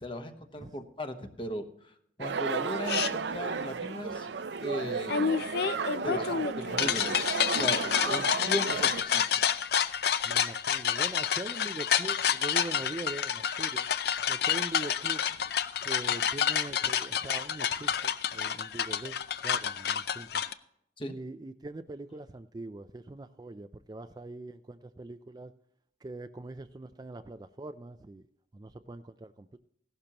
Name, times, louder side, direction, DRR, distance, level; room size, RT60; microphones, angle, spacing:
voice 1, 0.0-1.9 2.2-4.3 4.6-5.5 6.0-9.2 21.0-21.1, left 1 dB, 30° left, 6 dB, 1.0 m, -37 dB
sound 1, 2.2-9.0, right 5 dB, 75° right, 0.5 m, -33 dB
sound 2, 2.9-3.1 5.1-20.5, left 8 dB, 60° left, 0.5 m, -29 dB
voice 2, 10.2-13.9 14.3-15.2 15.9-19.2 19.4-20.4 21.0-25.5 26.0-28.2 28.5-29.6, right 2 dB, 20° right, 10 dB, 0.3 m, -42 dB
16.0 x 12.0 x 2.9 m, 0.70 s
head